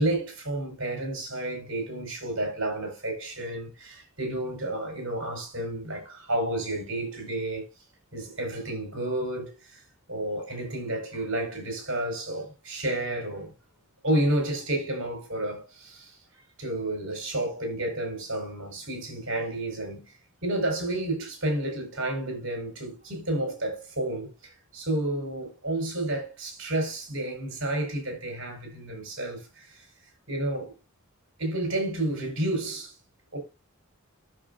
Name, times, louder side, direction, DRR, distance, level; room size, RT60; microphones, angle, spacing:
voice 1, 0.0-7.7 8.1-9.8 10.1-13.5 14.0-16.2 16.6-20.1 20.4-29.9 30.3-30.7 31.4-32.9 33.3-33.4, right 1 dB, 65° right, 5.3 m, -31 dB
12.5 x 6.9 x 2.7 m
head